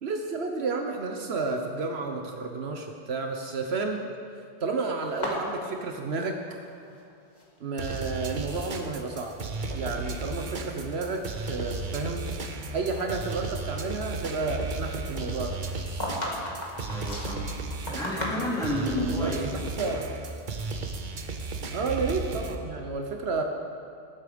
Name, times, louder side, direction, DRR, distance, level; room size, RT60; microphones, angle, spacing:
voice 1, 0.0-4.0 4.6-6.6 7.6-9.3 9.7-12.2 12.7-15.6 19.2-19.3 19.8-20.1 21.7-23.4, right 3 dB, 70° right, 3 dB, 1.2 m, -31 dB
sound 1, 5.0-7.0 7.3-8.1 8.7-9.2 9.6-9.8 10.5-10.6 11.1-12.6 12.9-13.1 15.4-18.8, left 1 dB, 40° left, 2.1 m, -37 dB
sound 2, 7.8-22.6, right 3 dB, 50° right, 1.0 m, -34 dB
voice 2, 16.9-17.5 17.9-20.0, equal, 5° left, -6 dB, 3.1 m, -31 dB
19.5 x 8.5 x 5.1 m, 2.5 s
omnidirectional pair, 1.1 m